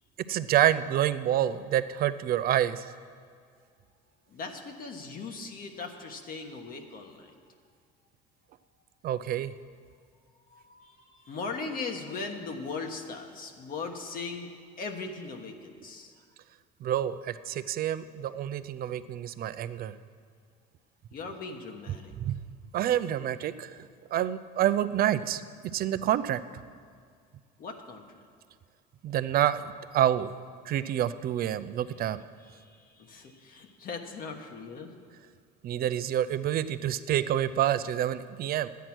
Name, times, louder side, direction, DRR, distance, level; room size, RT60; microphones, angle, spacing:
voice 1, 0.3-2.8 9.0-9.5 16.8-19.9 22.2-22.4 22.7-23.8 24.1-25.4 25.7-26.4 29.0-30.3 30.7-32.2 35.6-38.7, right 11 dB, 50° right, 14 dB, 0.5 m, -27 dB
voice 2, 4.3-7.4 10.5-16.1 21.1-22.1 27.6-28.2 32.4-34.9, left 4 dB, 50° left, 4 dB, 1.3 m, -39 dB
11.0 x 9.2 x 6.0 m, 2.1 s
supercardioid pair, 90°, 19 cm